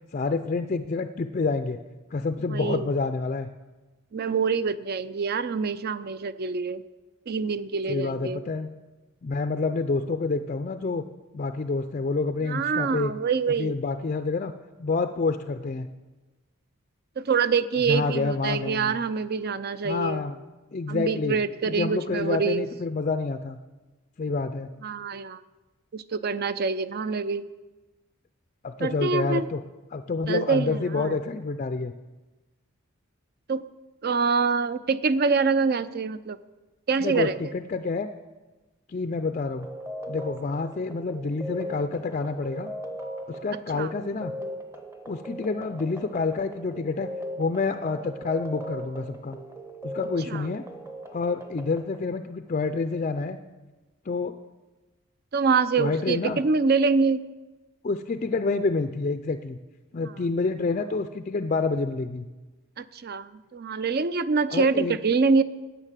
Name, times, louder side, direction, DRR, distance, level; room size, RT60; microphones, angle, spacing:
voice 1, 0.1-1.8 2.1-3.5 7.9-8.7 9.2-11.0 11.3-13.1 13.6-14.5 14.8-15.9 17.9-18.9 19.8-20.4 20.7-21.4 21.7-23.6 24.2-24.7 28.6-29.6 29.9-31.9 37.0-38.1 38.9-39.7 40.1-42.7 43.3-44.3 45.1-47.1 47.4-49.4 49.8-50.6 51.1-53.4 54.1-54.3 55.8-56.4 57.8-59.6 59.9-62.3 64.5-65.0, left 3 dB, 35° left, 8 dB, 0.4 m, -28 dB
voice 2, 2.5-2.9 4.1-6.8 7.3-8.4 12.5-13.8 17.2-20.2 20.9-22.6 24.8-25.4 25.9-27.4 28.8-29.5 30.3-31.2 33.5-33.6 34.0-36.4 36.9-37.4 43.7-43.9 50.3-50.5 55.3-57.2 60.0-60.1 62.8-65.4, right 5 dB, 45° right, 15 dB, 0.5 m, -25 dB
sound 1, 39.6-52.1, equal, 10° right, 0.9 m, -39 dB
10.0 x 9.2 x 7.4 m, 1.2 s
head